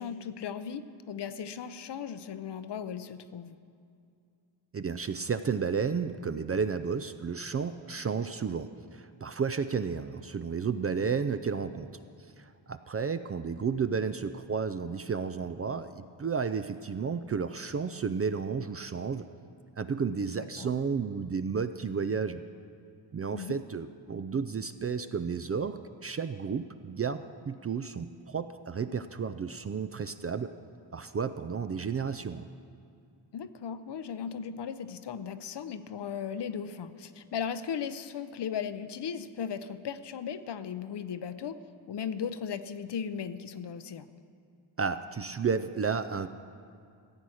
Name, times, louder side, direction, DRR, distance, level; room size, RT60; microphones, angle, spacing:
voice 1, 0.0-3.6 20.4-20.7 23.3-23.6 33.3-41.6 41.9-44.1, left 7 dB, 55° left, 12 dB, 0.7 m, -37 dB
voice 2, 4.7-11.9 12.4-19.3 19.8-22.4 23.1-30.5 30.9-32.4 44.8-46.3, right 5 dB, 30° right, 11 dB, 0.4 m, -32 dB
14.5 x 8.5 x 6.3 m, 2.4 s
cardioid pair, 80°, 49 cm